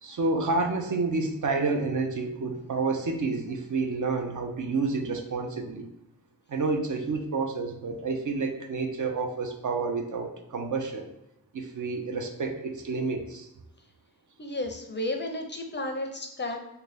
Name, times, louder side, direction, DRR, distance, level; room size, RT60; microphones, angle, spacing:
voice 1, 0.0-5.9 6.5-11.1 11.5-13.5, right 3 dB, 55° right, 4 dB, 0.6 m, -29 dB
voice 2, 14.4-16.6, left 1 dB, 30° left, 4 dB, 0.5 m, -32 dB
3.7 x 2.2 x 3.3 m, 0.89 s
wide cardioid pair, 95°, 37 cm